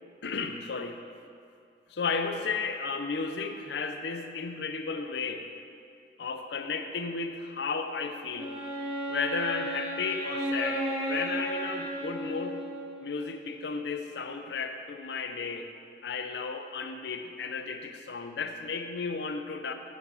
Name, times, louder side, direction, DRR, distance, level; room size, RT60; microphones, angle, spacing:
voice 1, 0.2-1.0 1.9-5.5 6.2-8.5 9.1-12.6 13.0-15.7 16.0-19.7, left 4 dB, 75° left, 6 dB, 0.5 m, -33 dB
Wind instrument woodwind instrument, 8.3-13.2, right 1 dB, 30° right, 1.9 m, -34 dB
9.3 x 7.1 x 3.4 m, 2.4 s
head